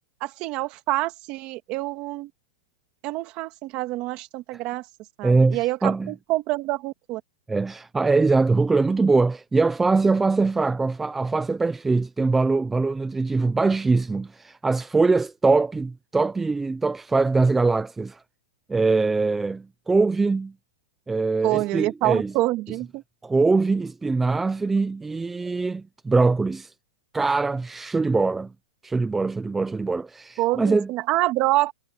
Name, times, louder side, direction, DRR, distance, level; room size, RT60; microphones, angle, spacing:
voice 1, 0.2-2.3 3.0-4.9 5.2-7.2 21.4-23.0 30.4-31.7, right 18 dB, 30° right, 1.8 m, -26 dB
voice 2, 5.2-6.1 7.5-18.2 18.7-20.5 21.1-22.3 23.2-26.7 27.1-28.5 28.8-30.9, right 3 dB, 5° right, 0.5 m, -22 dB
supercardioid pair, 165°, 3 cm